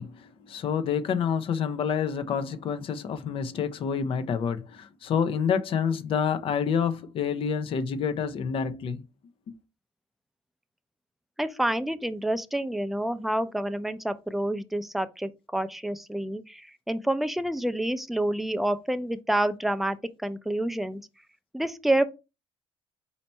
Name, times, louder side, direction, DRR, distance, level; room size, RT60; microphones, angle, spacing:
voice 1, 0.0-9.0 9.5-9.6, left 7 dB, 60° left, 0.6 m, -28 dB
voice 2, 11.4-21.0 21.5-22.0, right 1 dB, ahead, 0.5 m, -28 dB
4.3 x 2.8 x 4.3 m
supercardioid pair, 80°, 10 cm